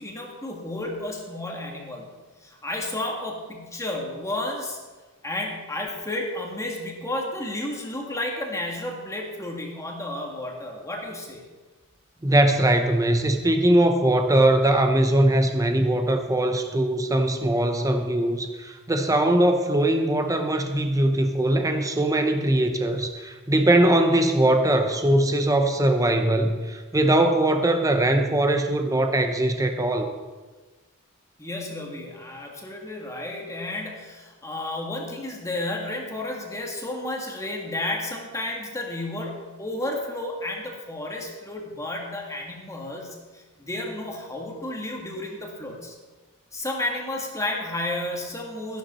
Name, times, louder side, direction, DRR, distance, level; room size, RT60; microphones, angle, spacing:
voice 1, 0.0-2.1 2.4-4.8 5.2-11.4 31.4-45.9 46.5-48.8, left 1 dB, 15° left, 0 dB, 1.8 m, -32 dB
voice 2, 12.2-30.1, right 1 dB, 15° right, 6 dB, 0.8 m, -21 dB
14.5 x 11.5 x 4.3 m, 1.3 s
head